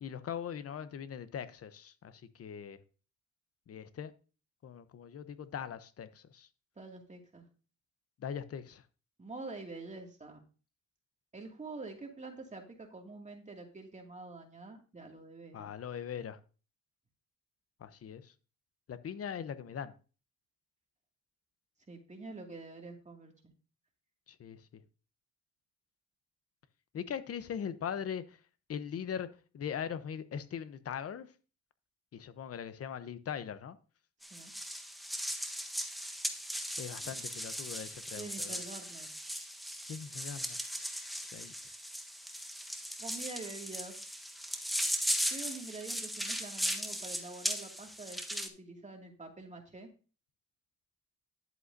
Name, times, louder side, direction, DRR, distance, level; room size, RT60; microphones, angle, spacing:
voice 1, 0.0-2.8 3.7-4.1 4.6-6.5 8.2-8.8 15.5-16.4 17.8-18.3 18.9-19.9 24.3-24.8 26.9-28.4 28.7-29.3 29.5-31.3 32.1-33.8 36.8-38.6 39.8-41.0 41.3-41.5, left 8 dB, 50° left, 0.9 m, -41 dB
voice 2, 6.8-7.4 9.2-10.4 11.3-15.7 21.9-23.3 34.3-34.5 36.9-37.2 38.2-39.1 43.0-44.3 45.3-49.9, right 3 dB, 25° right, 2.5 m, -46 dB
sound 1, 34.2-48.5, equal, ahead, 1.3 m, -38 dB
11.0 x 7.7 x 2.8 m
cardioid pair, 90°, 30 cm